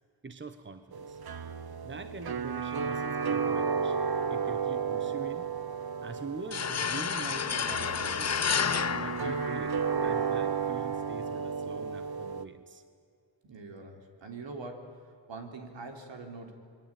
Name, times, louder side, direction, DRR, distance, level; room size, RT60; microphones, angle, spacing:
voice 1, 0.2-1.2 1.8-5.5 6.0-8.5 9.0-9.7 10.0-12.8, right 4 dB, 25° right, 9 dB, 1.3 m, -44 dB
sound 1, 0.9-12.4, right 6 dB, 50° right, 1.1 m, -33 dB
sound 2, 6.5-10.1, left 6 dB, 35° left, 0.9 m, -30 dB
voice 2, 13.4-15.0 15.3-16.5, right 3 dB, 70° right, 4 dB, 4.0 m, -43 dB
27.0 x 22.0 x 9.2 m, 2.3 s
wide cardioid pair, 110°, 46 cm